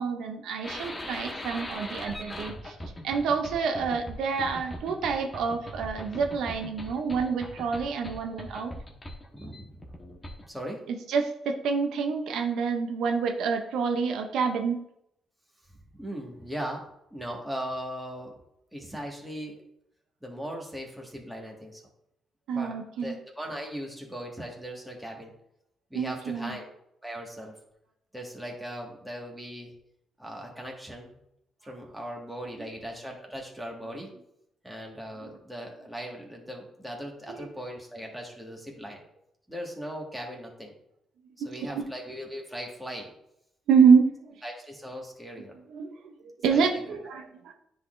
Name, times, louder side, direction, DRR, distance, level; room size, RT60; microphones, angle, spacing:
voice 1, 0.0-2.8 3.0-8.7 10.9-14.8 22.5-23.1 25.9-26.6 37.4-37.5 41.7-41.8 43.7-44.3 45.7-47.5, right 5 dB, 80° right, 5 dB, 0.6 m, -27 dB
sound 1, 0.6-10.6, left 1 dB, 20° left, 1.2 m, -40 dB
voice 2, 9.3-9.8 10.4-10.8 16.0-18.3 18.7-19.6 20.2-21.8 22.5-25.3 25.9-26.7 27.0-27.6 28.1-29.7 30.2-31.2 31.6-34.1 34.6-39.0 39.5-40.7 41.4-43.1 44.4-45.6 46.5-46.6, equal, 5° right, -1 dB, 1.7 m, -39 dB
9.8 x 4.1 x 2.6 m, 0.77 s
cardioid pair, 90°, 0 cm